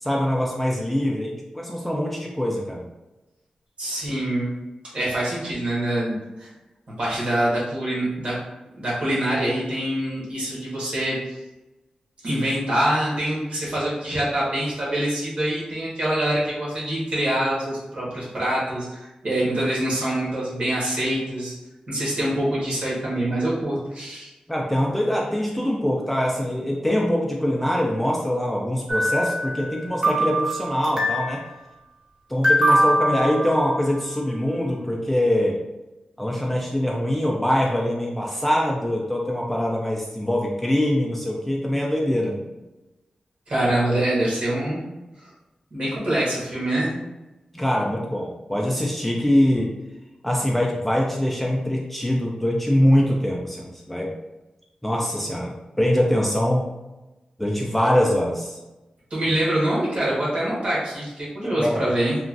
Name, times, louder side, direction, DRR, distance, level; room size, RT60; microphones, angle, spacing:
voice 1, 0.0-2.9 24.5-31.4 32.3-35.6 36.2-42.4 47.5-49.7 50.2-54.1 54.8-56.7 57.4-58.6 61.6-61.9, equal, 5° left, -2 dB, 0.4 m, -23 dB
voice 2, 3.8-4.5 4.9-6.5 7.0-8.4 8.7-11.4 12.2-21.5 21.9-24.3 43.5-44.8 45.7-46.9 59.1-62.2, right 1 dB, 55° right, -6 dB, 1.2 m, -25 dB
sound 1, 28.9-29.8 30.0-31.4 32.4-34.0, right 1 dB, 35° right, 0.8 m, -22 dB
3.0 x 2.4 x 2.5 m, 1.0 s
wide cardioid pair, 100°, 2 cm